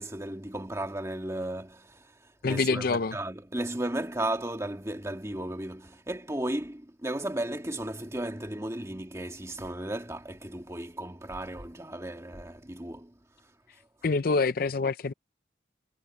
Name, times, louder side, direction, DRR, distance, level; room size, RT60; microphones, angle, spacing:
voice 1, 0.0-2.1 2.5-13.1, right 1 dB, 15° right, 2.1 m, -35 dB
voice 2, 2.4-3.2 14.0-15.1, left 4 dB, 50° left, 0.5 m, -26 dB
head